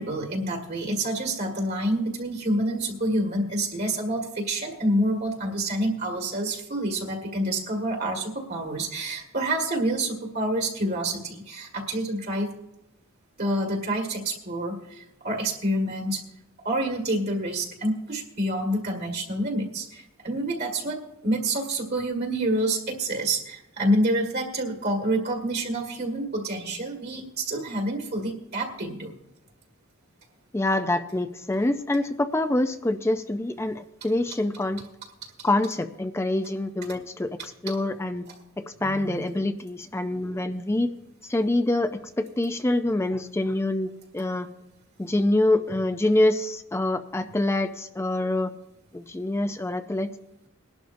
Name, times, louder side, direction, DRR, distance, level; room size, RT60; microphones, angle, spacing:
voice 1, 0.0-12.5 13.4-16.2 16.6-29.1 37.7-37.8 38.8-39.3, right 1 dB, 50° right, 1 dB, 1.8 m, -28 dB
voice 2, 30.5-34.8 35.4-37.4 37.6-38.2 38.6-40.9 41.3-44.5 45.0-48.5 48.9-50.1, left 1 dB, 15° left, 9 dB, 0.4 m, -25 dB
21.0 x 11.5 x 2.6 m, 0.90 s
head